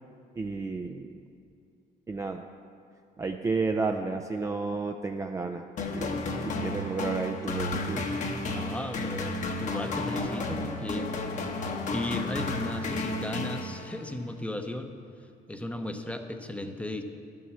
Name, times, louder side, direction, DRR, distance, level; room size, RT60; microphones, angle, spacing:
voice 1, 0.3-1.1 2.1-2.5 3.2-5.7 5.9-8.1, right 4 dB, 20° right, 4 dB, 0.4 m, -32 dB
sound 1, 5.8-14.1, left 2 dB, 45° left, 1.1 m, -32 dB
voice 2, 8.5-11.1 11.9-14.9 15.5-17.0, left 1 dB, 10° left, 6 dB, 0.8 m, -35 dB
12.0 x 7.3 x 6.1 m, 2.4 s
cardioid pair, 110°, 17 cm